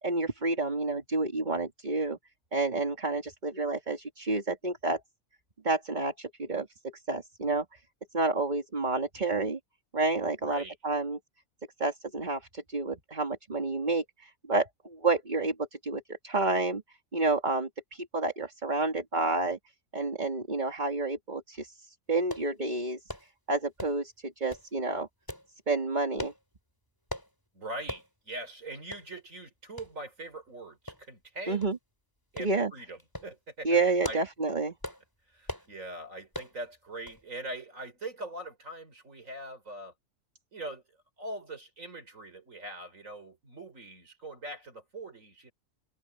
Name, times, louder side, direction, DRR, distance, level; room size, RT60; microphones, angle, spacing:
voice 1, 0.0-2.2 2.5-5.0 5.6-7.8 8.1-9.6 9.9-11.2 11.8-16.8 17.1-19.6 19.9-23.0 23.5-25.1 25.7-26.3 31.5-31.8 32.4-32.7 33.6-34.7, right 3 dB, 35° right, 2.3 m, -30 dB
voice 2, 10.4-10.7 27.5-31.6 32.3-34.2 35.3-39.9 40.5-40.8 41.2-45.5, right 2 dB, 75° right, 4.8 m, -42 dB
sound 1, 22.3-22.5 23.1-23.3 23.8-24.1 24.5-24.7 25.3-25.5 26.2-26.4 27.1-27.3 27.9-28.1 28.5-28.6 28.9-29.1 29.8-29.9 30.9-31.3 31.6-31.8 32.4-32.5 33.0-33.3 33.8-34.3 34.8-35.0 35.5-35.7 36.3-36.6 37.1-37.2 37.5-37.6, left 1 dB, 15° left, 3.6 m, -40 dB
omnidirectional pair, 1.4 m